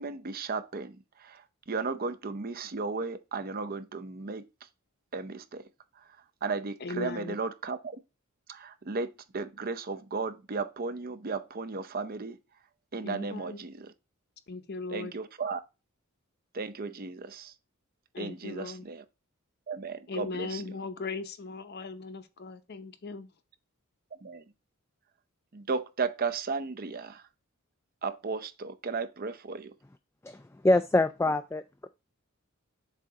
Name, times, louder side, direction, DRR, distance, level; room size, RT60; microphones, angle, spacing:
voice 1, 0.0-4.5 5.1-5.6 6.4-8.0 8.5-12.4 12.9-13.9 14.9-15.6 16.5-17.5 18.2-19.0 19.7-20.6 24.2-24.4 25.5-27.2 28.0-29.7, right 4 dB, 45° right, 0.6 m, -35 dB
voice 2, 6.8-7.4 13.0-13.6 14.5-15.1 18.1-18.9 20.1-23.3, left 3 dB, 50° left, 0.7 m, -38 dB
voice 3, 30.6-31.9, left 2 dB, 10° left, 0.3 m, -25 dB
7.4 x 2.7 x 4.7 m
head